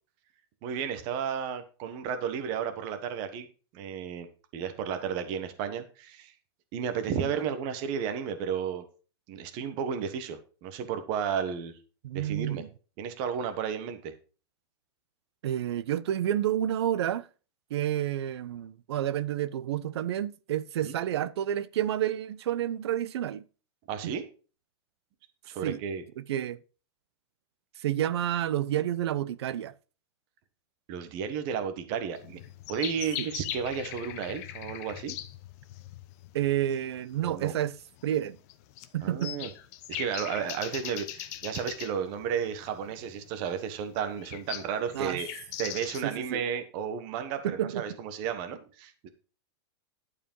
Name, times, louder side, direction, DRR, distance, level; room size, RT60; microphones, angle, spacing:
voice 1, 0.6-3.5 3.7-4.3 4.5-6.3 6.7-8.8 9.3-11.7 12.1-12.6 13.0-14.1 20.8-20.9 23.9-24.2 25.5-26.0 30.9-32.4 32.7-35.2 37.2-37.5 39.0-39.5 39.9-45.3 45.6-49.1, right 7 dB, 30° right, 1.2 m, -33 dB
voice 2, 12.0-12.7 15.4-17.3 17.7-23.4 24.0-24.1 25.6-25.8 26.2-26.6 27.8-29.7 33.2-33.3 36.3-37.7 38.0-38.4 38.9-39.4 44.9-45.2 46.0-46.4 47.4-47.8, right 11 dB, 70° right, 0.7 m, -29 dB
sound 1, 32.1-46.3, left 13 dB, 35° left, 0.8 m, -41 dB
11.5 x 4.9 x 5.5 m
supercardioid pair, 170°, 14 cm